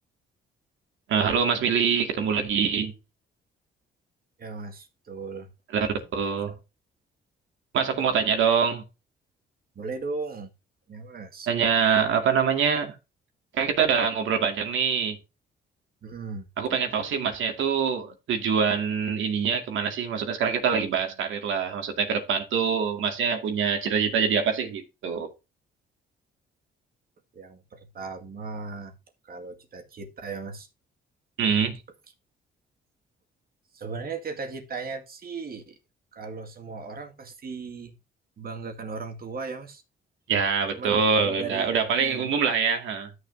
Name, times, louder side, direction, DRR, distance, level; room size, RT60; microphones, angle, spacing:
voice 1, 1.1-2.9 5.7-6.5 7.7-8.8 11.5-13.0 13.5-15.2 16.6-25.3 31.4-31.8 40.3-43.1, right 6 dB, 75° right, 2.2 m, -24 dB
voice 2, 4.4-5.5 6.1-6.5 9.8-10.5 10.9-11.5 16.0-16.5 27.3-29.0 29.2-30.7 33.7-35.8 36.1-38.0 38.4-39.8 40.7-42.3, right 4 dB, 50° right, 2.1 m, -37 dB
13.0 x 6.7 x 2.7 m
cardioid pair, 90°, 20 cm